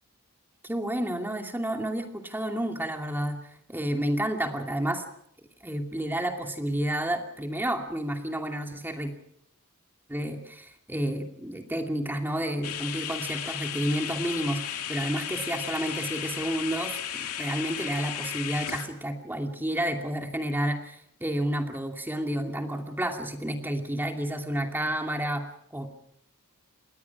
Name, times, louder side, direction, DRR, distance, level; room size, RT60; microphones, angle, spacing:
voice 1, 0.6-3.4 3.7-5.0 5.6-9.1 10.1-25.9, right 1 dB, 10° right, 4 dB, 2.6 m, -30 dB
sound 1, 12.6-18.9, left 10 dB, 80° left, 2.5 m, -34 dB
28.0 x 20.5 x 6.0 m, 0.72 s
head